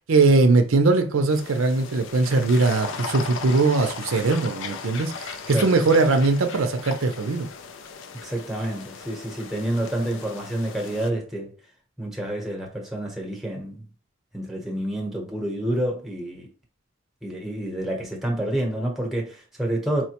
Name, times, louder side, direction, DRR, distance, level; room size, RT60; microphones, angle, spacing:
voice 1, 0.0-7.5, right 3 dB, 75° right, 0.5 m, -20 dB
sound 1, 1.3-11.1, left 5 dB, 60° left, 0.4 m, -37 dB
voice 2, 8.2-11.5 12.0-13.8 14.3-16.5 17.2-20.0, right 1 dB, ahead, 0.9 m, -28 dB
4.4 x 2.1 x 2.9 m
head